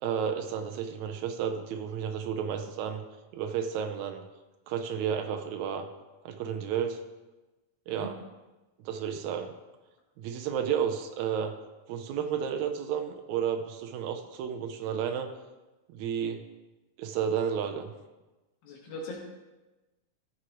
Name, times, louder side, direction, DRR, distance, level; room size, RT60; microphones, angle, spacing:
voice 1, 0.0-3.0 3.3-4.2 4.7-5.9 6.2-7.0 7.9-8.1 8.8-9.5 10.2-11.5 11.9-15.3 15.9-16.4 17.0-17.9, right 8 dB, 80° right, 5 dB, 1.7 m, -32 dB
voice 2, 18.6-19.2, left 1 dB, 85° left, -2 dB, 3.4 m, -39 dB
14.5 x 6.3 x 3.0 m, 1.1 s
omnidirectional pair, 4.0 m